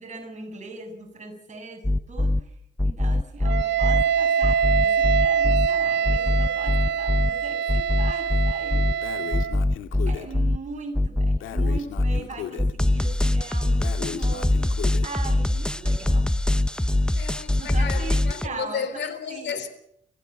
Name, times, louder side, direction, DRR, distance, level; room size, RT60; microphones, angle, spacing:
voice 1, 0.0-2.6 2.8-9.4 10.1-14.7 15.0-16.7 17.0-17.2 17.6-19.6, right 4 dB, 35° right, 7.1 m, -40 dB
sound 1, 1.8-2.4 2.8-4.0 4.4-5.7 6.0-7.3 7.7-8.9 9.3-10.6 10.9-12.2 12.6-18.5, left 1 dB, 5° left, 0.8 m, -22 dB
Wind instrument woodwind instrument, 3.4-9.6, right 7 dB, 60° right, 0.9 m, -24 dB
Breathing, 9.0-10.3 11.4-12.7 13.8-15.1, left 9 dB, 80° left, 2.2 m, -36 dB
voice 2, 17.1-19.7, left 7 dB, 65° left, 3.7 m, -33 dB
26.5 x 15.5 x 8.2 m
cardioid pair, 90°, 20 cm